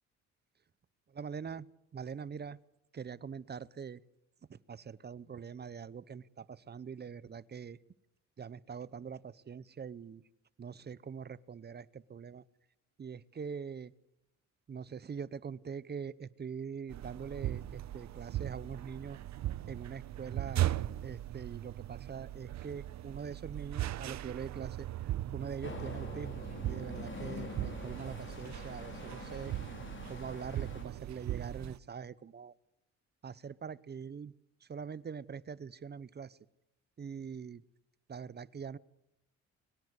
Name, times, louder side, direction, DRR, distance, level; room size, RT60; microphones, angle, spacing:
voice 1, 1.1-1.7 1.9-2.6 2.9-4.0 4.5-7.8 8.4-10.2 10.6-12.4 13.0-13.9 14.7-19.2 19.7-20.7 21.0-24.9 25.3-29.8 30.1-32.5 33.2-34.3 34.6-36.4 37.0-37.6 38.1-38.8, right 6 dB, 35° right, 20 dB, 0.8 m, -43 dB
sound 1, 16.9-31.8, right 13 dB, 65° right, 0.8 m, -39 dB
sound 2, 25.6-30.8, left 3 dB, 40° left, 4.1 m, -45 dB
22.5 x 18.5 x 8.2 m, 0.81 s
cardioid pair, 90°, 30 cm